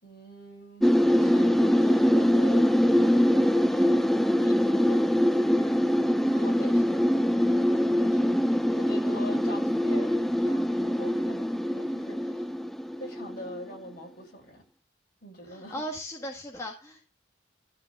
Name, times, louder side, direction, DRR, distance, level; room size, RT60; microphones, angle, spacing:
voice 1, 0.0-12.5 13.0-14.6 15.2-15.8, left 1 dB, 55° left, 6.6 m, -44 dB
sound 1, 0.8-13.6, equal, ahead, 0.5 m, -23 dB
voice 2, 15.5-17.1, equal, 15° left, 1.7 m, -37 dB
13.0 x 4.9 x 7.1 m
head